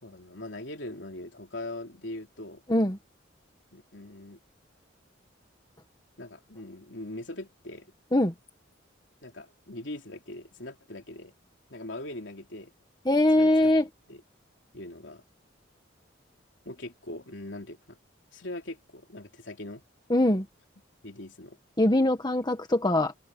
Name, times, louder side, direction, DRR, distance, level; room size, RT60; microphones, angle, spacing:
voice 1, 0.0-2.6 3.7-4.4 6.2-7.9 9.2-11.3 11.7-12.7 13.4-14.2 14.7-15.2 16.7-18.0 18.3-19.8 21.0-21.6, left 1 dB, 65° left, 3.7 m, -41 dB
voice 2, 13.0-13.8 20.1-20.4 21.8-23.1, left 1 dB, 20° left, 1.4 m, -22 dB
head